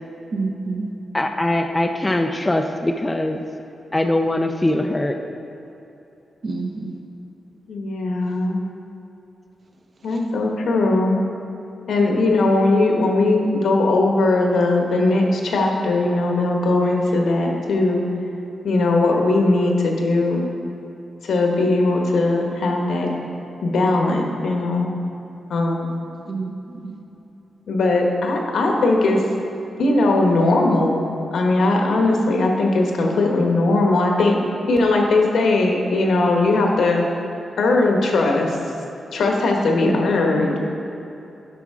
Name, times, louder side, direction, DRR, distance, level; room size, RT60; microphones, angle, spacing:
voice 1, 0.3-0.9 6.4-6.9 10.1-10.2 26.3-26.9 39.8-40.4, right 3 dB, 45° right, 1 dB, 1.0 m, -28 dB
voice 2, 1.1-3.4 3.9-5.2 39.9-40.1, left 1 dB, 15° left, 4 dB, 0.4 m, -21 dB
voice 3, 7.7-8.6 10.0-11.2 11.9-18.0 18.6-20.5 21.2-23.1 23.6-24.9 25.5-26.0 27.7-29.2 29.8-31.0 31.3-34.4 34.7-37.0 37.6-38.6 39.1-40.6, left 2 dB, 80° left, 1 dB, 1.2 m, -19 dB
11.0 x 6.0 x 3.7 m, 2.9 s
wide cardioid pair, 125°, 0 cm